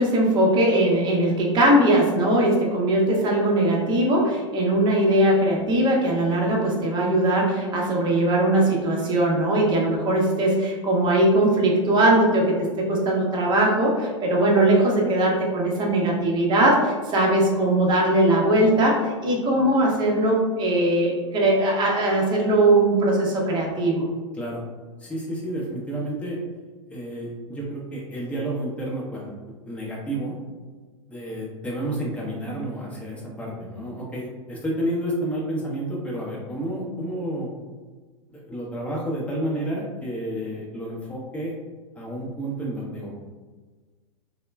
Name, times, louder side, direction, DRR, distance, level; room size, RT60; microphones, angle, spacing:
voice 1, 0.0-24.1, right 1 dB, 30° right, -2 dB, 0.7 m, -20 dB
voice 2, 25.0-26.4 26.9-29.3 29.6-30.4 31.1-37.5 38.3-41.5 42.0-43.1, right 1 dB, 10° left, -5 dB, 0.7 m, -30 dB
3.0 x 2.0 x 2.2 m, 1.4 s
hypercardioid pair, 100°, 16 cm